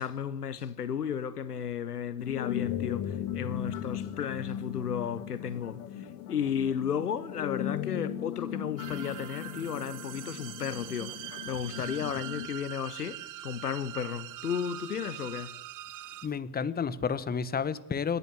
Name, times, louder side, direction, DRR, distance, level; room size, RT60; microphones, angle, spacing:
voice 1, 0.0-5.8 6.3-15.5, left 8 dB, 90° left, 1.0 m, -34 dB
sound 1, 2.2-12.5, left 10 dB, 65° left, 2.1 m, -37 dB
sound 2, 8.8-16.3, right 13 dB, 40° right, 1.3 m, -43 dB
voice 2, 16.2-18.2, left 6 dB, 20° left, 1.3 m, -31 dB
27.5 x 11.0 x 8.5 m
figure-of-eight pair, 75°, 45 cm